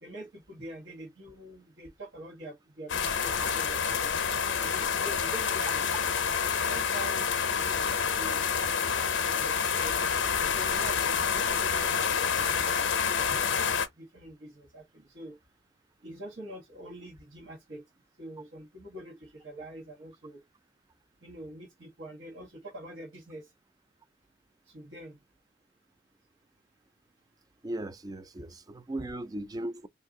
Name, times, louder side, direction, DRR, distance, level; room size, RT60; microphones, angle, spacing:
voice 1, 0.0-4.2 4.6-5.8 6.6-10.0 10.5-13.4 14.0-15.4 16.0-17.8 18.2-20.4 21.2-23.5 24.7-25.2, right 1 dB, 80° right, 1.3 m, -45 dB
sound 1, 2.9-13.9, left 6 dB, 70° left, 0.6 m, -28 dB
voice 2, 27.6-29.9, right 1 dB, 20° right, 0.3 m, -37 dB
2.7 x 2.3 x 3.6 m
head